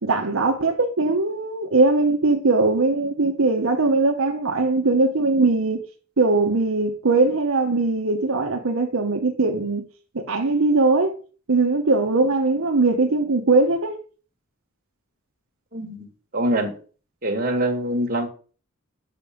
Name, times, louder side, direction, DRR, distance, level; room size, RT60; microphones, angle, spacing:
voice 1, 0.0-5.8 6.2-9.8 10.1-11.1 11.5-14.0, right 3 dB, 80° right, 1.0 m, -20 dB
voice 2, 15.7-16.7 17.2-18.3, right 1 dB, 45° right, 1.8 m, -24 dB
7.5 x 5.9 x 5.1 m
head